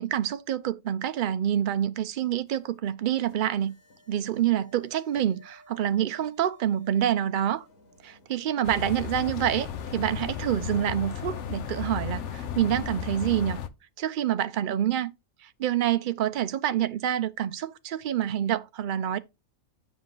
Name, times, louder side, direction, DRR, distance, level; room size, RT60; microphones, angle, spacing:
voice 1, 0.0-3.7 4.1-7.6 8.0-9.7 9.9-13.6 14.0-15.1 15.4-19.2, right 10 dB, 70° right, 0.4 m, -27 dB
sound 1, 2.5-8.8, equal, 80° left, 2.4 m, -57 dB
sound 2, 8.6-13.7, left 8 dB, 65° left, 1.0 m, -34 dB
7.1 x 5.7 x 3.8 m
omnidirectional pair, 1.4 m